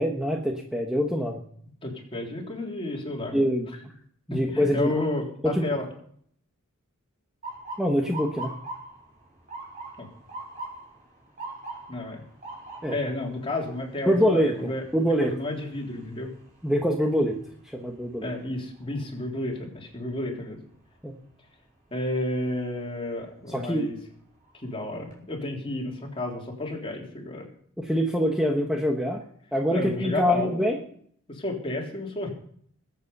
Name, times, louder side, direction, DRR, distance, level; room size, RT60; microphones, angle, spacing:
voice 1, 0.0-1.4 3.3-3.7 4.3-5.0 5.5-5.6 7.8-8.5 12.8-13.0 14.1-15.3 16.6-17.4 17.7-18.3 21.0-21.1 23.5-23.9 27.8-29.2 29.5-30.8, equal, 5° right, 1 dB, 1.3 m, -24 dB
voice 2, 1.8-3.4 4.3-5.9 10.0-10.1 11.9-12.2 12.9-14.8 15.2-16.3 18.2-20.6 21.9-24.0 24.5-27.5 29.7-30.5 31.3-32.3, left 2 dB, 25° left, -1 dB, 3.6 m, -31 dB
Motor vehicle (road) / Siren, 7.4-19.3 19.8-20.2 21.0-21.3 23.2-23.4 23.9-24.0 24.4-25.1, right 2 dB, 40° right, 4.9 m, -43 dB
21.0 x 8.5 x 5.5 m, 0.63 s
head